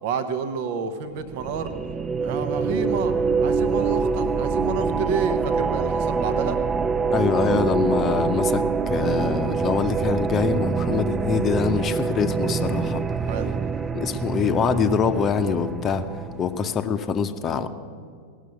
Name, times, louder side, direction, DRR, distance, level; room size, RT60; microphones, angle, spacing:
voice 1, 0.0-1.7 2.2-3.1 3.4-6.6 13.3-13.5 16.4-16.6, right 6 dB, 50° right, 10 dB, 1.0 m, -29 dB
sound 1, 1.2-16.6, right 5 dB, 20° right, 0.5 m, -25 dB
voice 2, 7.1-13.0 13.9-16.1 16.4-17.7, left 6 dB, 25° left, 9 dB, 0.8 m, -24 dB
18.0 x 6.6 x 9.0 m, 2.1 s
figure-of-eight pair, 90°, 0 cm